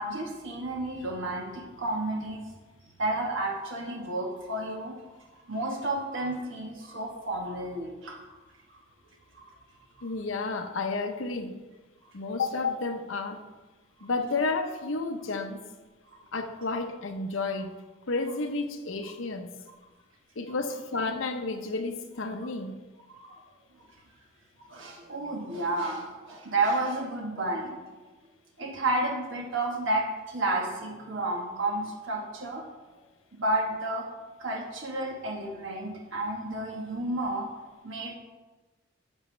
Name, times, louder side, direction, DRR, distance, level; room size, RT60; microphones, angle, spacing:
voice 1, 0.0-2.4 3.0-5.0 5.5-8.2 8.7-8.8 9.3-9.4 10.0-10.1 16.1-16.2 22.4-22.5 23.1-23.4 23.7-23.9 24.6-27.8 28.6-32.6 33.3-34.1 34.4-37.5 37.8-38.1, right 2 dB, 75° right, 0 dB, 1.2 m, -31 dB
voice 2, 10.0-11.5 12.1-13.4 14.0-15.6 16.3-17.7 18.1-19.5 20.4-22.8, left 3 dB, 85° left, 7 dB, 0.8 m, -31 dB
11.5 x 6.3 x 3.2 m, 1.3 s
head